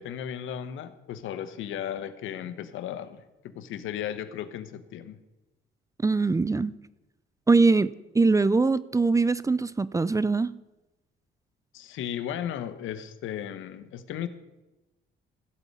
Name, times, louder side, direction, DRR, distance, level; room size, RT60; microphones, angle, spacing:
voice 1, 0.0-5.2 11.7-14.3, left 10 dB, 85° left, 11 dB, 1.0 m, -35 dB
voice 2, 6.0-6.7 7.5-10.5, right 3 dB, 15° right, 18 dB, 0.4 m, -22 dB
16.0 x 5.3 x 8.4 m, 1.0 s
cardioid pair, 90°, 20 cm